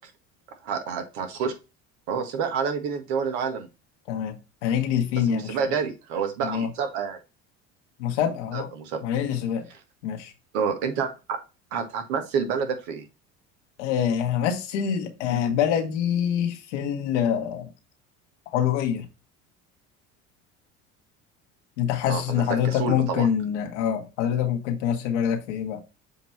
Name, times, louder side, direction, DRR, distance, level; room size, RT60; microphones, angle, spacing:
voice 1, 0.6-1.5 2.1-3.7 5.3-7.2 8.5-9.0 10.5-11.4 11.7-13.0 22.0-23.3, right 6 dB, 75° right, 1.7 m, -28 dB
voice 2, 4.1-5.6 6.4-6.7 8.0-8.7 9.0-9.6 10.0-10.3 13.8-17.7 18.5-19.1 21.8-25.8, left 9 dB, 85° left, 1.4 m, -25 dB
7.1 x 3.0 x 4.4 m
supercardioid pair, 80°, 35 cm